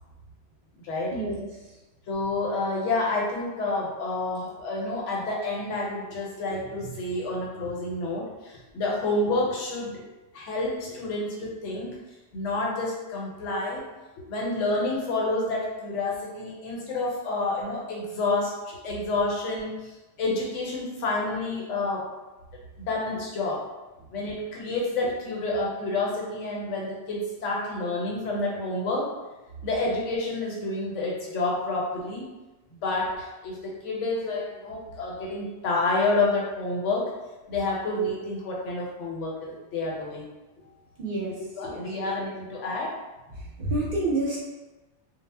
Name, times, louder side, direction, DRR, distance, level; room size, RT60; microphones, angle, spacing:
voice 1, 1.1-1.4 41.0-41.3 41.7-41.8 43.6-44.4, right 2 dB, 55° right, -5 dB, 0.6 m, -28 dB
voice 2, 2.1-10.0 10.3-11.9 12.3-13.8 14.2-19.9 20.2-22.1 22.8-23.7 24.1-29.1 29.6-32.3 32.7-37.1 37.5-40.2 41.6-43.0, left 2 dB, 85° left, -2 dB, 1.0 m, -29 dB
2.1 x 2.0 x 3.2 m, 1.1 s
omnidirectional pair, 1.2 m